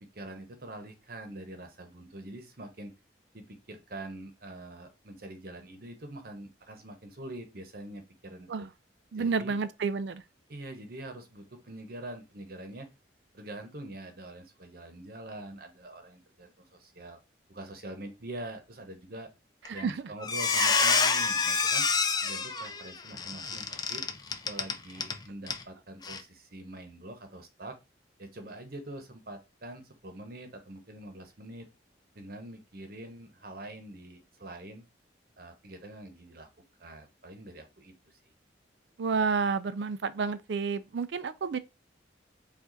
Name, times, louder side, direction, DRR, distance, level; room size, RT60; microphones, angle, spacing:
voice 1, 0.0-2.9 3.3-8.7 9.1-9.6 10.5-12.9 13.3-17.2 17.5-19.3 19.7-21.9 22.2-24.0 24.4-27.8 28.2-31.7 32.1-34.9 35.4-36.5 36.8-38.2, right 1 dB, 55° right, 0.9 m, -44 dB
voice 2, 9.1-10.2 19.7-19.9 20.6-20.7 39.0-41.6, right 5 dB, 70° right, 0.4 m, -30 dB
Squeak, 19.7-19.9 20.2-25.2 25.5-25.6 26.0-26.2, left 5 dB, 20° left, 0.4 m, -27 dB
4.9 x 2.5 x 3.9 m
head